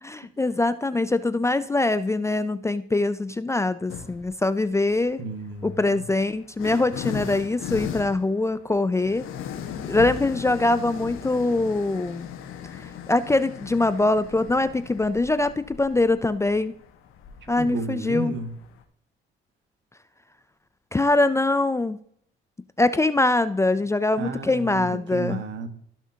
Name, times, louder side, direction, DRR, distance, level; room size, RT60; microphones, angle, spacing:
voice 1, 0.0-5.2 5.6-9.2 9.9-12.3 12.8-16.8 17.5-18.3 20.9-22.0 22.8-25.4, left 2 dB, 15° left, 13 dB, 0.4 m, -23 dB
sound 1, 3.9-4.4 5.3-18.8, left 8 dB, 80° left, 1.4 m, -38 dB
voice 2, 5.2-6.0 17.4-18.5 24.2-25.7, right 3 dB, 60° right, 8 dB, 1.4 m, -33 dB
15.5 x 6.0 x 2.8 m, 0.66 s
cardioid pair, 90°, 21 cm